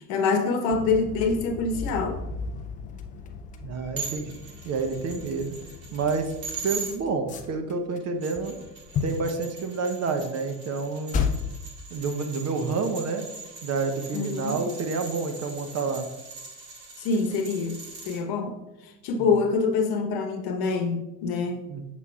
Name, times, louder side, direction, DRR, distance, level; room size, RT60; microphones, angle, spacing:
voice 1, 0.1-2.2 14.1-14.6 17.0-17.8 18.1-18.5 19.0-21.6, left 4 dB, 50° left, 6 dB, 1.1 m, -25 dB
sound 1, 0.7-8.0 8.3-9.3 10.2-10.3 11.1-11.6, left 5 dB, 20° left, 0.3 m, -34 dB
voice 2, 3.6-4.3 4.6-5.6 5.9-6.3 6.6-8.5 9.0-11.2 11.9-13.3 13.6-16.1 19.2-19.3 21.7-21.8, right 4 dB, 35° right, 6 dB, 0.7 m, -29 dB
sound 2, 4.0-6.9 8.0-18.2, right 4 dB, 70° right, 2.2 m, -41 dB
7.4 x 5.8 x 2.4 m, 0.96 s
hypercardioid pair, 85°, 48 cm